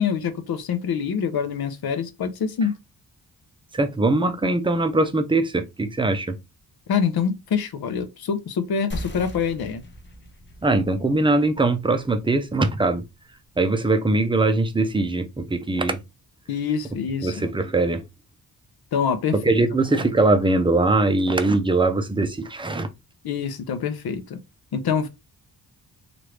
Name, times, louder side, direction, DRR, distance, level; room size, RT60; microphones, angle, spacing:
voice 1, 0.0-2.7 6.9-9.8 16.5-17.5 18.9-19.5 23.2-24.4 24.7-25.1, left 6 dB, 70° left, 0.7 m, -25 dB
voice 2, 3.7-6.4 10.6-13.0 13.6-16.0 17.2-18.0 19.4-22.9, right 2 dB, 15° right, 0.4 m, -21 dB
sound 1, 8.9-14.0, left 1 dB, 30° left, 0.6 m, -40 dB
3.0 x 2.5 x 3.1 m
wide cardioid pair, 130°, 38 cm